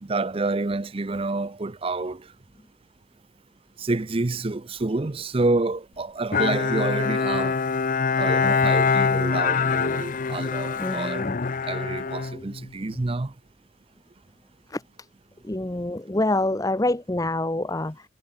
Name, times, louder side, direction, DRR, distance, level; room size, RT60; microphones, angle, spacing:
voice 1, 0.0-2.2 3.8-7.6 8.2-11.3 11.7-13.3, right 3 dB, 30° right, 0.6 m, -28 dB
Bowed string instrument, 6.3-13.0, left 5 dB, 45° left, 0.6 m, -24 dB
voice 2, 10.8-11.4 14.7-14.8 15.4-18.0, left 2 dB, 20° left, 0.9 m, -26 dB
head